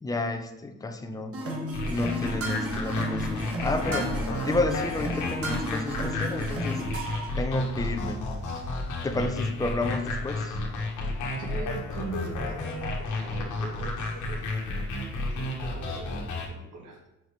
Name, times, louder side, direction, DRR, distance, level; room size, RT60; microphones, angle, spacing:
voice 1, 0.0-1.4 1.9-4.1 4.4-6.8 7.4-8.2 9.0-10.6, left 2 dB, 10° left, 5 dB, 0.6 m, -31 dB
sound 1, 1.3-7.3, equal, 50° right, 1.7 m, -33 dB
sound 2, 1.7-16.5, left 2 dB, 75° left, 1.2 m, -32 dB
voice 2, 11.4-14.4 15.4-17.0, right 3 dB, 80° right, 0 dB, 1.8 m, -40 dB
4.8 x 4.5 x 5.0 m, 0.93 s
cardioid pair, 90°, 30 cm